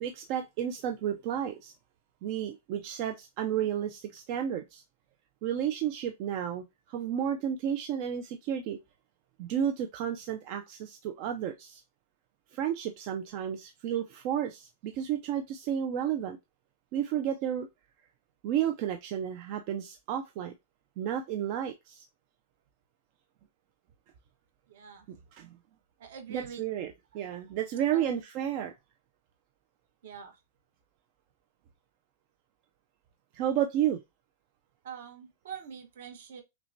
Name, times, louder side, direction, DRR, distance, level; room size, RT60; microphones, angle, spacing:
voice 1, 0.0-1.7 2.2-4.8 5.4-8.8 9.4-11.8 12.5-16.4 16.9-17.7 18.4-20.5 21.0-22.0 25.1-25.5 26.3-28.7 33.3-34.0, right 9 dB, 35° right, 0.4 m, -32 dB
voice 2, 24.7-25.1 26.0-26.6 27.9-28.1 30.0-30.4 34.8-36.4, right 7 dB, 55° right, 1.0 m, -44 dB
5.9 x 2.1 x 2.6 m
supercardioid pair, 175°, 0 cm